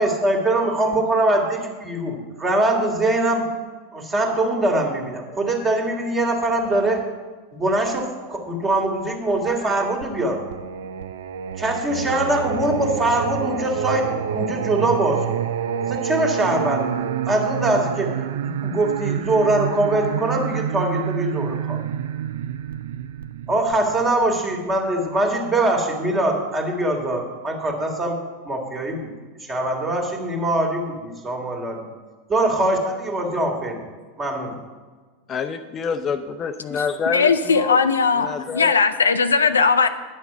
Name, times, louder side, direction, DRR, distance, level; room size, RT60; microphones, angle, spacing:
voice 1, 0.0-3.5 3.9-7.1 7.5-10.4 11.6-15.3 15.8-18.2 18.4-21.8 23.5-28.2 28.5-29.1 29.5-31.8 32.3-33.8 34.2-34.6, right 1 dB, 20° right, 2 dB, 2.2 m, -22 dB
Singing, 10.0-24.7, right 8 dB, 70° right, 0.4 m, -28 dB
voice 2, 35.3-37.8 38.2-38.7, left 6 dB, 30° left, 7 dB, 0.5 m, -27 dB
voice 3, 37.1-39.9, left 5 dB, 80° left, 10 dB, 0.5 m, -18 dB
9.8 x 6.0 x 6.7 m, 1.4 s
figure-of-eight pair, 90°, 0 cm